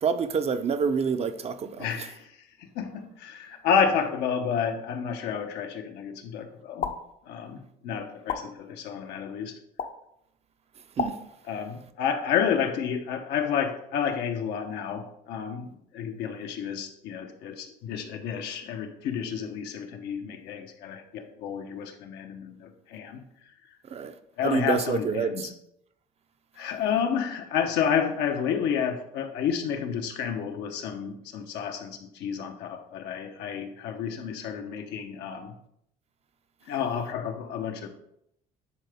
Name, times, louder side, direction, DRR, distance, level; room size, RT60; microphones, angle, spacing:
voice 1, 0.0-1.9 11.0-11.2 23.9-24.1 24.4-25.5, right 6 dB, 40° right, 0.5 m, -27 dB
voice 2, 1.8-6.9 7.3-9.6 11.4-23.5 24.4-25.5 26.6-35.5 36.7-37.9, left 7 dB, 85° left, 0.9 m, -30 dB
sound 1, 6.8-7.0 8.3-8.4 9.8-9.9 11.0-11.1, left 7 dB, 55° left, 0.7 m, -28 dB
10.0 x 3.8 x 3.5 m
cardioid pair, 110°, 17 cm